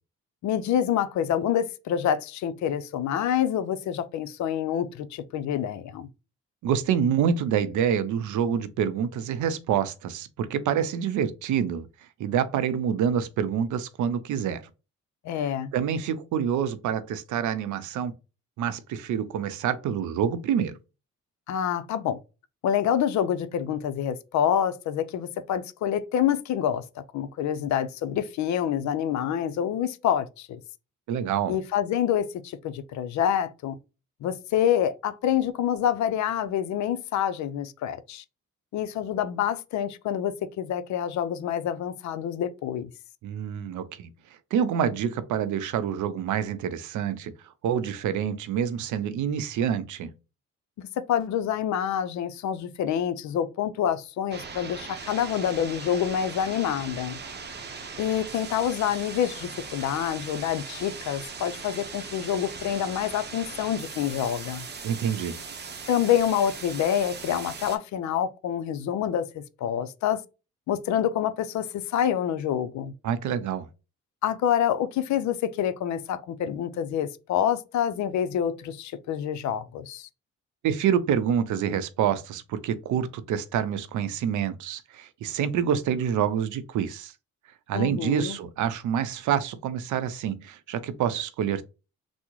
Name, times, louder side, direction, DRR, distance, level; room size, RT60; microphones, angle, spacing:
voice 1, 0.4-6.1 15.2-15.7 21.5-22.2 22.6-30.6 31.5-33.8 34.2-38.2 38.7-42.9 50.8-57.2 58.0-64.7 65.9-70.2 70.7-72.9 74.2-80.1 87.7-88.4, left 9 dB, 70° left, 0.5 m, -27 dB
voice 2, 6.6-11.9 12.2-14.6 15.7-18.1 18.6-20.7 31.1-31.6 43.2-44.1 44.5-47.3 47.6-50.1 64.8-65.4 73.0-73.7 80.6-87.1 87.7-91.6, right 8 dB, 75° right, 0.6 m, -27 dB
sound 1, 54.3-67.8, right 5 dB, 35° right, 0.7 m, -39 dB
3.5 x 2.0 x 3.0 m
cardioid pair, 90°, 30 cm